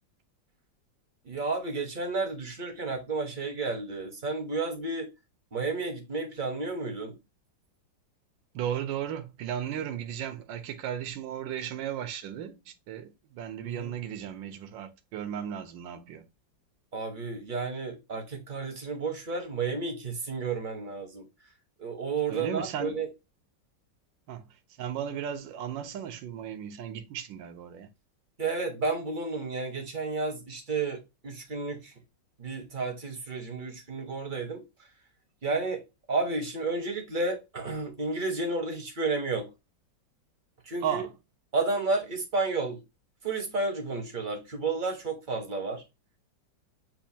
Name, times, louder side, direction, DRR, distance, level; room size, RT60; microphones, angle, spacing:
voice 1, 1.2-5.1 5.5-7.2 13.6-13.9 16.9-21.3 21.8-23.1 28.4-31.9 32.4-34.6 35.4-35.8 36.1-39.5 40.6-41.0 41.5-42.8 43.2-45.8, right 3 dB, 35° right, 0.8 m, -31 dB
voice 2, 8.5-16.2 22.3-23.0 24.3-27.9 40.8-41.1, right 9 dB, 80° right, 1.4 m, -35 dB
7.3 x 2.6 x 2.7 m
omnidirectional pair, 2.0 m